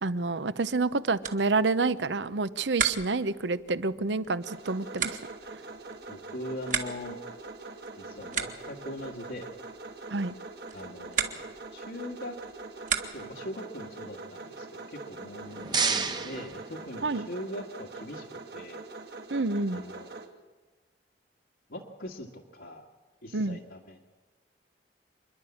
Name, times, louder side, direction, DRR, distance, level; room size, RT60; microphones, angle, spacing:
voice 1, 0.0-5.2 10.1-10.3 17.0-17.3 19.3-19.8 23.3-23.6, right 3 dB, 85° right, 15 dB, 0.8 m, -28 dB
sound 1, 1.1-13.5, right 7 dB, 45° right, 1.7 m, -38 dB
sound 2, 4.4-20.3, right 3 dB, 65° right, 2.5 m, -43 dB
voice 2, 6.1-7.2 8.0-9.5 10.7-11.4 11.7-12.4 13.1-18.8 19.7-20.1 21.7-22.8 23.2-24.0, left 1 dB, 80° left, -2 dB, 1.9 m, -41 dB
sound 3, 15.2-17.4, right 5 dB, 25° right, 1.1 m, -32 dB
27.0 x 11.5 x 8.5 m, 1.3 s
head